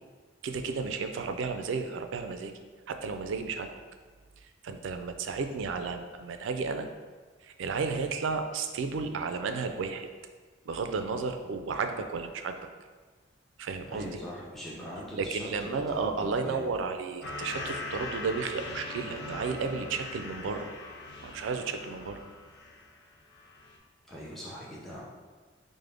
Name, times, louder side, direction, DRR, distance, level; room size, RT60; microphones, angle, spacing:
voice 1, 0.4-2.5 2.9-3.7 4.4-6.9 7.4-10.1 10.7-12.6 13.6-14.2 15.1-20.7 21.2-22.2, right 4 dB, 70° right, 7 dB, 0.3 m, -33 dB
voice 2, 13.9-16.7 24.1-25.0, equal, ahead, -7 dB, 0.5 m, -41 dB
sound 1, 17.2-23.0 23.3-23.8, left 2 dB, 55° left, 0.5 m, -41 dB
4.9 x 2.1 x 3.3 m, 1.5 s
head